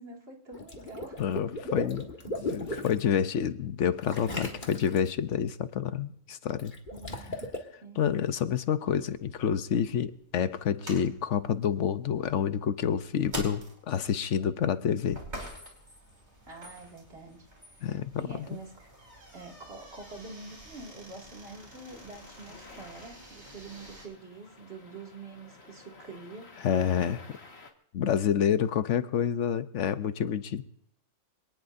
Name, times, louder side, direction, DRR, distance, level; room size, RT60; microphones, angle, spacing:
voice 1, 0.0-1.2 1.6-1.7 4.5-4.8 6.9-7.4 7.8-8.0 16.4-17.4 17.7-19.0 19.3-26.5 28.9-29.1, right 3 dB, 55° right, 0 dB, 2.6 m, -46 dB
Water / Liquid, 0.5-3.0 4.1-5.1 6.6-7.6, left 1 dB, 40° left, 1.9 m, -36 dB
voice 2, 1.2-2.1 2.4-6.7 8.0-15.2 17.8-18.5 26.6-27.2 27.9-30.6, left 8 dB, 80° left, 12 dB, 1.1 m, -28 dB
sound 1, 8.8-24.1, equal, 35° right, 4.1 m, -47 dB
sound 2, 21.4-27.7, left 3 dB, 60° left, 1.9 m, -53 dB
25.0 x 18.5 x 2.6 m, 0.70 s
omnidirectional pair, 1.2 m